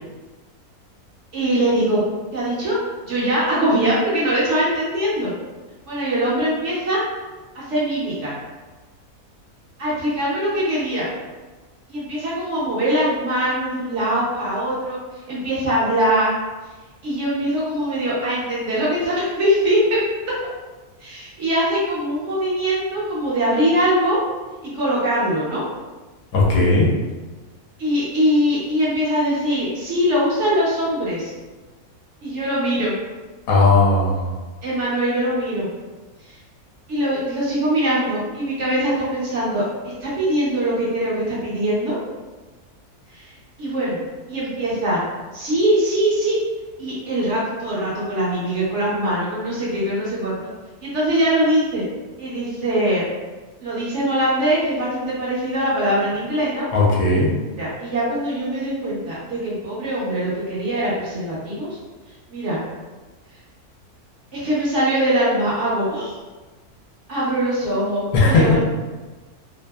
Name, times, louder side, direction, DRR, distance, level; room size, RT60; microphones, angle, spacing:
voice 1, 1.3-2.0 2.3-2.8 3.0-5.3 5.8-7.0 7.5-8.3 9.8-11.1 11.9-15.0 15.3-16.3 17.0-20.0 21.0-24.2 24.6-25.6 27.8-31.3 32.2-32.9 34.6-35.7 36.9-39.6 40.0-42.0 43.1-43.3 43.6-44.0 44.3-45.0 45.3-46.4 46.8-50.4 50.8-51.8 52.2-53.1 53.6-56.7 57.4-61.7 62.3-62.6 64.3-66.1 67.1-68.6, right 1 dB, 60° right, -7 dB, 0.9 m, -22 dB
voice 2, 26.3-26.9 33.5-34.3 56.7-57.3 68.1-68.4, left 3 dB, 70° left, -3 dB, 1.0 m, -16 dB
2.7 x 2.4 x 2.2 m, 1.3 s
omnidirectional pair, 1.6 m